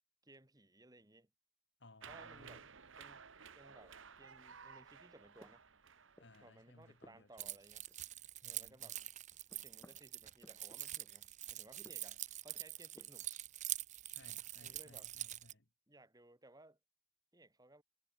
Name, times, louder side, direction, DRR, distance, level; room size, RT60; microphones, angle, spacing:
voice 1, 0.2-1.3 2.0-2.7 3.0-3.3 3.6-5.6 6.4-7.9 8.4-9.0 9.6-13.3 14.6-15.1 15.9-16.8 17.3-17.8, right 1 dB, 20° right, 2.6 m, -61 dB
voice 2, 1.8-2.7 6.2-7.5 8.4-9.1 14.1-15.7, left 2 dB, 60° left, 2.3 m, -63 dB
sound 1, 2.0-7.0 7.3-7.4, right 6 dB, 75° right, 1.3 m, -56 dB
sound 2, 5.1-6.5 6.8-8.4 8.6-11.2 11.7-13.4, equal, 15° left, 6.5 m, -65 dB
Keys jangling, 7.4-15.5, right 14 dB, 35° right, 0.6 m, -45 dB
head